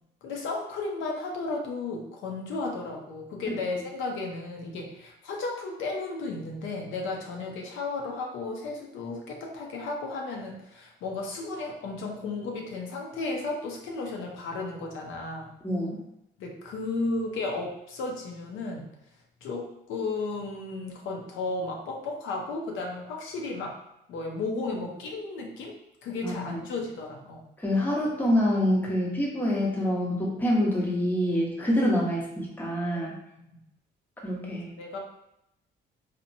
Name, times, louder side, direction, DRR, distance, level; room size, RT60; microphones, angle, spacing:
voice 1, 0.2-15.5 16.4-18.9 19.4-23.7 24.1-25.7 26.0-27.5 32.8-33.1 33.5-33.6 34.8-35.0, left 3 dB, 85° left, 0 dB, 0.6 m, -34 dB
voice 2, 15.6-16.0 26.2-26.6 27.6-33.1 34.2-34.7, equal, 10° left, -4 dB, 0.8 m, -26 dB
2.8 x 2.1 x 2.6 m, 0.82 s
cardioid pair, 90°, 20 cm